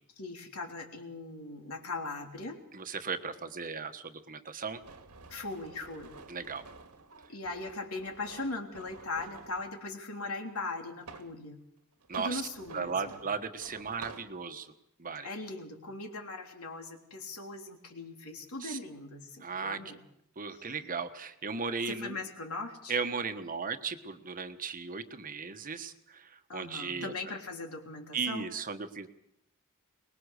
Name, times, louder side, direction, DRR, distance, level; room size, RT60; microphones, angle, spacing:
voice 1, 0.2-2.6 5.3-6.1 7.3-11.6 12.1-12.9 15.2-20.0 20.5-20.7 21.9-22.9 26.5-28.5, left 3 dB, 70° left, 3 dB, 3.4 m, -39 dB
voice 2, 2.7-4.8 6.3-6.6 12.1-12.4 12.7-14.7 15.0-15.3 18.6-18.8 19.4-19.8 20.4-22.2 22.9-27.1 28.1-29.1, right 5 dB, 40° right, 8 dB, 1.3 m, -36 dB
sound 1, 4.7-9.7 10.6-11.4 12.0-14.3, right 4 dB, 85° right, 2.0 m, -50 dB
23.5 x 20.5 x 6.6 m, 0.78 s
head